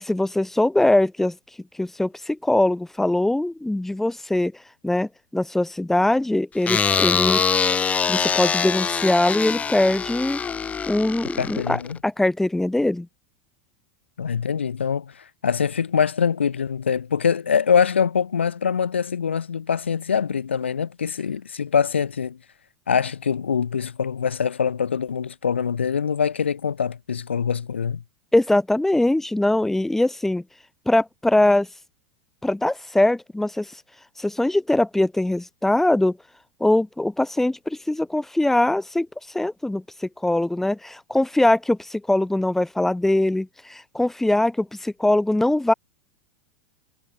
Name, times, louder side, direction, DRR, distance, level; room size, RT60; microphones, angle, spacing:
voice 1, 0.0-1.3 1.8-4.5 4.8-7.4 8.1-10.4 10.9-13.1 28.3-30.4 30.9-31.7 32.4-33.7 34.2-36.2 36.6-39.1 39.3-45.7, left 1 dB, 5° left, 4.7 m, -22 dB
sound 1, 6.7-12.0, left 6 dB, 20° left, 7.3 m, -24 dB
voice 2, 11.4-12.0 14.2-15.1 15.4-22.4 22.9-28.0, left 7 dB, 80° left, 6.2 m, -23 dB
figure-of-eight pair, 90°, 6 cm